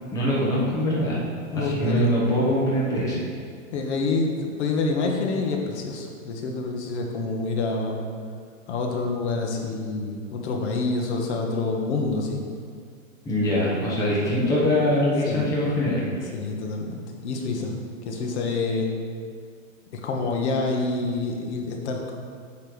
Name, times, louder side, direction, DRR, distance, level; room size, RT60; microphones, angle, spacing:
voice 1, 0.1-1.2 1.5-3.2 13.2-16.1, equal, 10° left, -6 dB, 1.0 m, -23 dB
voice 2, 1.5-2.1 3.7-8.0 8.7-12.4 13.7-14.1 15.3-15.6 16.3-17.7 18.0-18.9 19.9-22.1, left 3 dB, 55° left, 1 dB, 1.1 m, -27 dB
8.6 x 3.3 x 6.1 m, 2.1 s
supercardioid pair, 170°, 39 cm